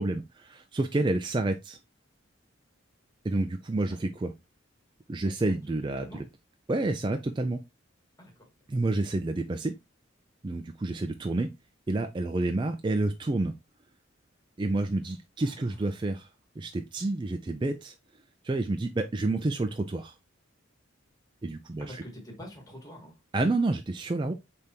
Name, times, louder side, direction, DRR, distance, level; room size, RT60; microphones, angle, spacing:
voice 1, 0.0-1.8 3.2-4.3 5.1-6.2 6.7-7.6 8.7-9.7 10.4-11.5 11.9-13.5 14.6-16.3 16.6-17.9 18.4-20.1 21.4-22.0 23.3-24.3, right 2 dB, 25° right, 0.3 m, -29 dB
voice 2, 5.2-6.3 8.2-8.5 15.4-15.9 17.0-17.2 21.8-23.2, equal, 15° left, 1.4 m, -47 dB
5.1 x 3.4 x 2.8 m
head